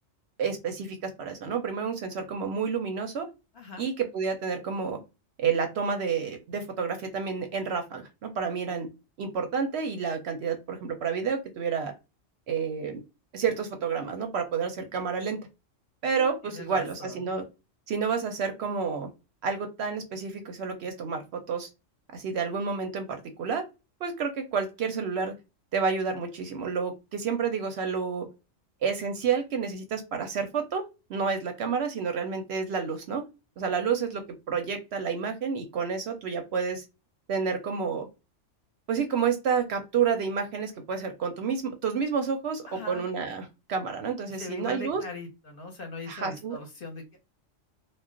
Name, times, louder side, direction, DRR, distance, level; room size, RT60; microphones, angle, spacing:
voice 1, 0.4-3.3 3.8-5.0 5.4-8.9 9.2-11.9 12.5-13.0 13.3-15.4 16.0-17.4 17.9-19.1 19.4-21.7 22.1-23.6 24.0-25.3 25.7-28.3 28.8-30.8 31.1-33.2 33.6-34.2 34.5-36.8 37.3-38.1 38.9-45.0 46.1-46.6, right 6 dB, 65° right, 6 dB, 0.7 m, -29 dB
voice 2, 3.5-3.9 16.1-17.3 42.7-43.1 44.3-47.2, left 3 dB, 55° left, 2 dB, 0.7 m, -41 dB
2.3 x 2.1 x 3.6 m, 0.27 s
omnidirectional pair, 1.3 m